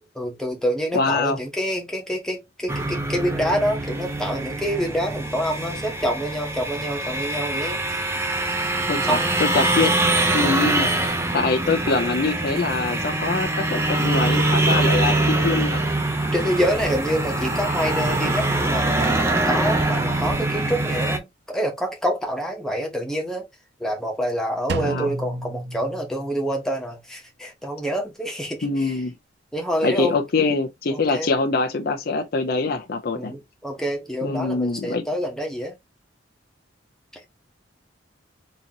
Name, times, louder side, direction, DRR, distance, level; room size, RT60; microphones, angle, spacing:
voice 1, 0.2-8.0 9.1-9.3 14.7-14.9 16.3-23.5 23.8-29.0 29.5-30.1 30.9-31.3 33.2-35.8 37.1-37.2, equal, 5° left, 0.9 m, -27 dB
voice 2, 0.9-1.4 8.9-10.0 10.3-10.9 11.3-15.8 24.8-25.1 28.6-29.2 29.8-33.3 34.2-35.0, left 3 dB, 50° left, 0.5 m, -24 dB
sound 1, 2.7-21.2, right 2 dB, 15° right, 0.6 m, -23 dB
Drum, 24.7-26.6, right 2 dB, 55° right, 0.5 m, -31 dB
3.9 x 2.8 x 2.8 m
head